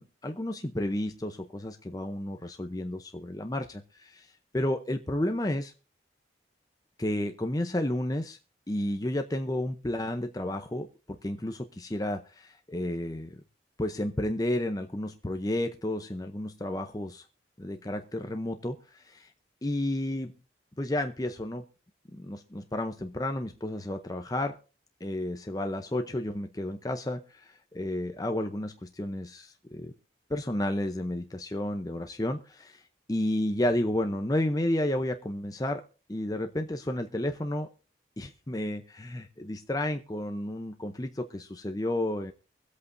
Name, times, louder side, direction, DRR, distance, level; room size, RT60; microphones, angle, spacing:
voice 1, 0.0-5.7 7.0-8.4 8.7-13.4 13.8-17.3 17.6-19.3 19.6-20.3 20.8-21.6 22.1-24.6 25.0-29.9 30.3-32.8 33.1-35.8 36.1-37.7 38.2-42.3, left 1 dB, 20° left, 6 dB, 0.7 m, -32 dB
23.5 x 8.4 x 2.6 m, 0.35 s
head